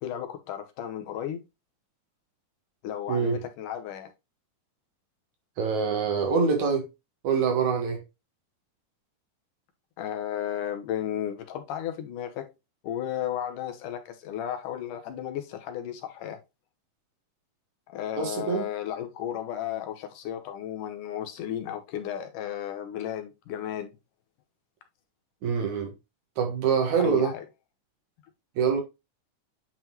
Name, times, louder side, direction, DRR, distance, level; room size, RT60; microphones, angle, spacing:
voice 1, 0.0-1.4 2.8-4.1 10.0-12.5 12.8-16.4 17.9-23.9 27.0-27.4, left 10 dB, 75° left, 2.4 m, -34 dB
voice 2, 3.1-3.4 5.6-6.9 7.2-8.0 18.2-18.7 25.4-25.9 26.4-27.3 28.6-28.8, right 6 dB, 65° right, 2.6 m, -25 dB
9.0 x 3.9 x 2.9 m
omnidirectional pair, 3.9 m